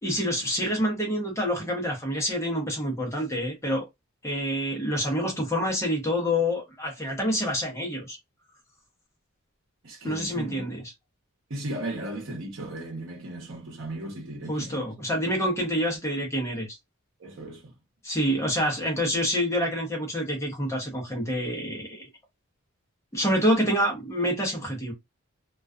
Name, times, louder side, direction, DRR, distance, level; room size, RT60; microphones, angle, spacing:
voice 1, 0.0-3.9 4.2-8.2 10.0-10.8 14.5-16.7 18.0-22.0 23.1-24.9, equal, 15° left, 0.8 m, -27 dB
voice 2, 9.8-10.6 11.5-14.9 17.2-17.7, right 1 dB, 65° right, 0.9 m, -36 dB
2.3 x 2.3 x 2.4 m
head